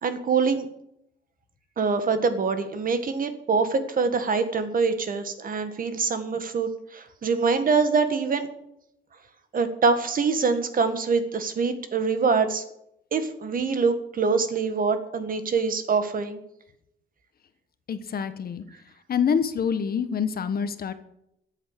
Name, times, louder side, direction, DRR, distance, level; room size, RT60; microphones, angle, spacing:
voice 1, 0.0-0.7 1.8-8.5 9.5-12.6 13.1-16.4, right 5 dB, 45° right, 10 dB, 1.7 m, -24 dB
voice 2, 17.9-18.6 19.1-20.9, left 7 dB, 50° left, 11 dB, 1.2 m, -26 dB
14.0 x 8.2 x 8.2 m, 0.78 s
cardioid pair, 140°, 20 cm